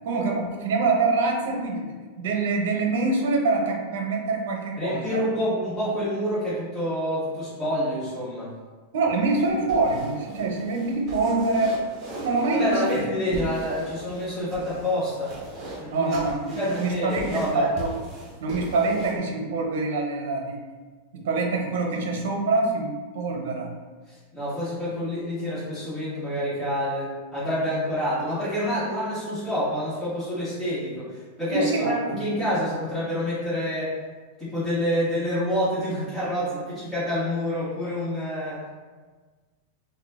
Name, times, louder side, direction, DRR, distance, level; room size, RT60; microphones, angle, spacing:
voice 1, 0.0-1.9 2.2-5.2 8.9-11.8 12.2-13.1 15.9-17.9 18.4-20.6 21.1-23.7 31.5-32.3, right 3 dB, 70° right, 1 dB, 0.6 m, -25 dB
voice 2, 4.8-8.5 12.5-15.3 15.8-16.1 16.5-17.7 24.1-33.9 34.4-38.6, equal, 10° left, -13 dB, 1.3 m, -27 dB
sound 1, 9.3-19.2, right 1 dB, 30° right, 0.8 m, -39 dB
3.0 x 2.1 x 3.5 m, 1.4 s
supercardioid pair, 150°, 0 cm